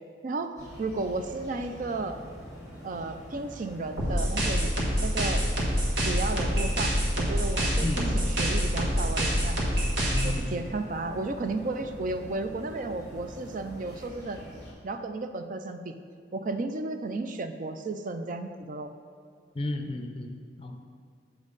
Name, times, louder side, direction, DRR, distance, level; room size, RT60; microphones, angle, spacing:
sound 1, 0.6-14.7, equal, 20° right, 1.5 m, -45 dB
voice 1, 0.8-2.2 2.8-4.7 5.0-5.4 6.0-9.6 10.2-14.4 14.8-15.9 16.3-18.9, right 3 dB, 45° right, 8 dB, 0.4 m, -33 dB
sound 2, 4.0-10.4, equal, 70° right, 1.4 m, -26 dB
voice 2, 10.1-10.6 19.6-20.8, left 2 dB, 30° left, 5 dB, 0.6 m, -33 dB
7.2 x 5.4 x 3.9 m, 2.2 s
head